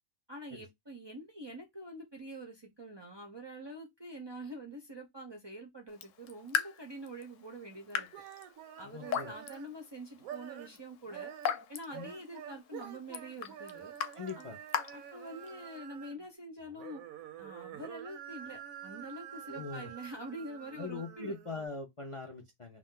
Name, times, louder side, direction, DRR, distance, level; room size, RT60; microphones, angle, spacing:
voice 1, 0.3-8.1 8.8-11.3 11.7-13.9 14.4-14.5 14.9-17.0 17.4-21.3, right 1 dB, 40° right, 0.3 m, -46 dB
Raindrop / Drip, 5.9-15.8, left 8 dB, 75° left, 0.9 m, -40 dB
sound 1, 7.9-9.8 10.2-10.8 11.1-16.3 16.6-21.7, right 10 dB, 85° right, 1.0 m, -48 dB
voice 2, 8.8-9.4 11.9-12.1 14.1-14.6 19.4-19.9 20.7-22.8, left 3 dB, 55° left, 0.3 m, -42 dB
2.4 x 2.4 x 3.7 m
omnidirectional pair, 1.4 m